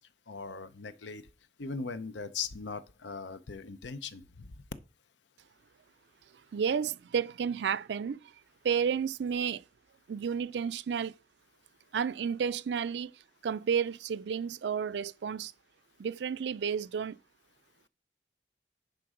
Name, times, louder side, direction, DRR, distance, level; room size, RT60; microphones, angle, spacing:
voice 1, 0.3-1.2 1.6-4.5, left 5 dB, 85° left, 0.7 m, -39 dB
voice 2, 6.5-8.2 8.6-9.6 10.1-11.1 11.9-13.1 13.4-15.5 16.0-17.2, right 7 dB, 70° right, 0.4 m, -31 dB
10.5 x 3.9 x 4.9 m
head